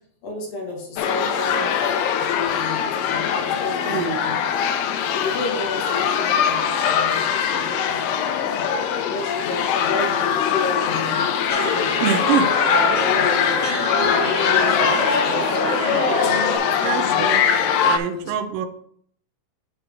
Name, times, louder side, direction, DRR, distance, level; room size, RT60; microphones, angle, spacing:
voice 1, 0.2-1.8 2.2-4.4 5.1-8.7 9.1-11.2 11.7-12.1 12.6-13.6 14.0-15.4 15.9-17.2 17.5-17.7 18.0-18.3, left 3 dB, 65° left, -1 dB, 2.9 m, -32 dB
sound 1, 1.0-18.0, left 8 dB, 85° left, 2.6 m, -22 dB
voice 2, 3.8-4.2 12.0-12.5 16.8-17.5 17.8-18.7, right 8 dB, 90° right, 7 dB, 1.9 m, -25 dB
sound 2, 11.5-16.6, left 1 dB, 30° left, 3.5 m, -25 dB
8.0 x 7.5 x 3.4 m, 0.64 s
omnidirectional pair, 4.8 m